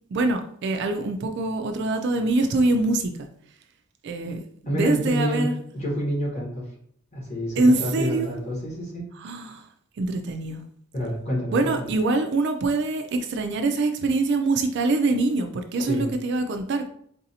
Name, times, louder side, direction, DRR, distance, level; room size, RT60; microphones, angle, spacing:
voice 1, 0.1-3.1 4.0-5.6 7.6-8.3 9.2-9.6 10.0-10.6 11.5-16.9, right 2 dB, 50° right, 6 dB, 0.3 m, -24 dB
voice 2, 4.6-5.5 5.7-6.7 7.1-9.1 10.9-11.9 15.7-16.1, equal, 30° left, -4 dB, 1.3 m, -28 dB
3.9 x 2.5 x 2.8 m, 0.66 s
head